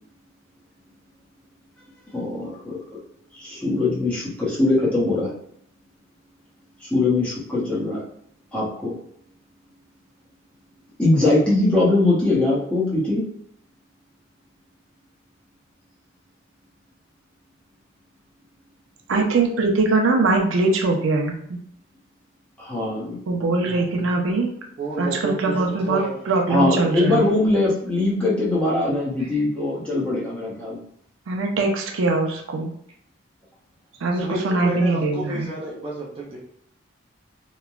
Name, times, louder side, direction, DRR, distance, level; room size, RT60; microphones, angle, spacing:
voice 1, 2.1-2.8 3.3-5.3 6.8-8.0 8.5-8.9 11.0-13.2 22.6-23.2 26.5-30.8, left 2 dB, 5° left, -8 dB, 0.8 m, -21 dB
voice 2, 19.1-21.3 23.3-24.5 25.0-27.3 31.3-32.7 34.0-35.5, right 3 dB, 85° right, 2 dB, 0.5 m, -22 dB
voice 3, 24.8-26.3 29.2-29.4 34.1-36.4, right 2 dB, 30° right, -5 dB, 0.5 m, -31 dB
2.9 x 2.1 x 2.4 m, 0.67 s
head